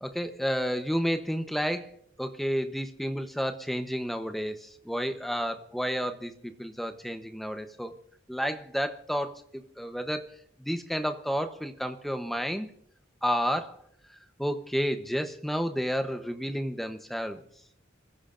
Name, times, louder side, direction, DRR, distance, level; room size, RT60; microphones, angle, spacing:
voice 1, 0.0-1.9 2.2-8.0 8.3-9.4 9.8-10.2 10.6-12.7 13.2-13.8 14.4-17.4, equal, ahead, 0.9 m, -31 dB
28.5 x 15.5 x 2.6 m
head